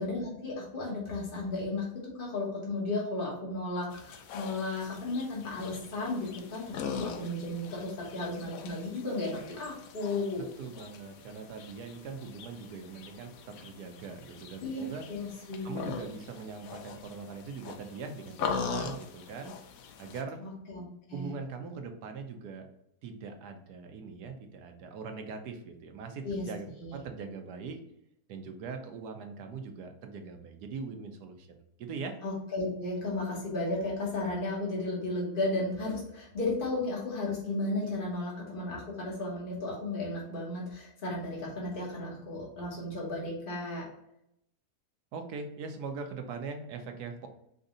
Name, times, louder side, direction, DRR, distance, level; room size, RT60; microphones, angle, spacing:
voice 1, 0.0-10.4 14.6-15.8 20.4-21.3 26.2-26.5 26.8-27.0 32.2-43.9, left 2 dB, 35° left, -4 dB, 1.5 m, -34 dB
sound 1, 3.9-20.2, left 6 dB, 70° left, 0.9 m, -42 dB
voice 2, 10.4-15.0 15.6-19.5 20.0-20.5 21.1-22.7 23.0-27.8 28.3-32.2 45.1-47.3, right 5 dB, 90° right, 6 dB, 1.3 m, -41 dB
5.1 x 2.7 x 3.8 m, 0.77 s
omnidirectional pair, 1.6 m